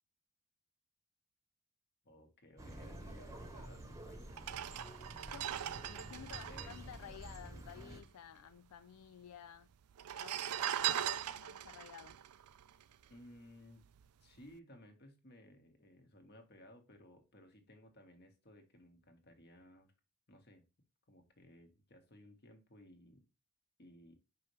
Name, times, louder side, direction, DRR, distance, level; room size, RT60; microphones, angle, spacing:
voice 1, 2.0-4.9 5.3-6.0 6.5-6.8 13.1-13.8 14.2-19.9 20.3-20.6 21.1-23.2 23.8-24.1, left 1 dB, 50° left, 1.6 m, -59 dB
sound 1, 2.6-8.0, right 1 dB, 15° right, 1.0 m, -50 dB
sound 2, 3.6-3.7 4.3-8.0 8.2-8.3 8.5-9.2 9.9-13.4 13.8-14.1, right 11 dB, 85° right, 0.4 m, -40 dB
voice 2, 5.2-5.6 5.9-9.7 10.1-12.2, left 9 dB, 80° left, 0.3 m, -53 dB
5.5 x 5.5 x 3.2 m
head